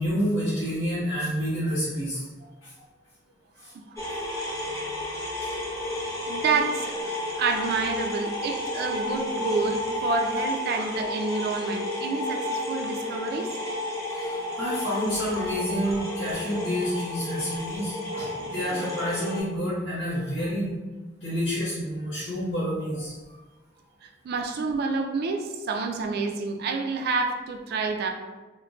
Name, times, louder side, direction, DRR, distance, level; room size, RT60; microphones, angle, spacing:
voice 1, 0.0-2.2 2.6-2.7 3.6-3.7 5.4-5.5 8.9-9.0 10.7-10.9 14.1-20.7 21.2-23.1, equal, 80° left, -9 dB, 0.9 m, -29 dB
sound 1, 4.0-19.4, left 1 dB, 15° left, 0.7 m, -32 dB
voice 2, 6.0-7.1 7.4-13.6 24.0-28.1, right 4 dB, 55° right, 5 dB, 0.3 m, -29 dB
2.2 x 2.1 x 3.7 m, 1.2 s
head